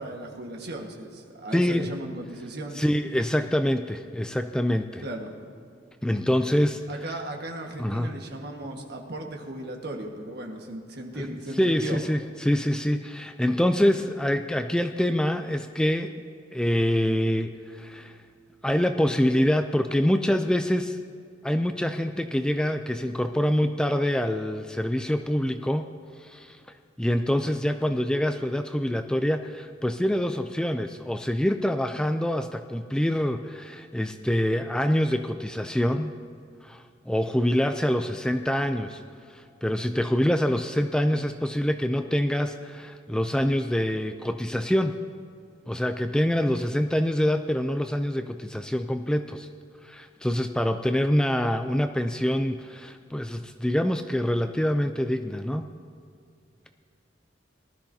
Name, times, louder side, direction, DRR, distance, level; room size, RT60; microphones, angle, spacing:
voice 1, 0.0-2.8 5.0-5.3 6.9-12.0, right 1 dB, 60° right, 1 dB, 1.5 m, -36 dB
voice 2, 1.5-1.9 2.8-5.0 6.0-6.8 7.8-8.1 11.1-16.1 16.5-18.2 18.6-21.0 21.4-25.9 26.2-26.6 27.0-36.1 36.6-39.0 39.3-45.0 45.7-49.5 49.8-55.7, equal, 5° left, 7 dB, 0.3 m, -25 dB
19.0 x 13.0 x 2.8 m, 2.4 s
head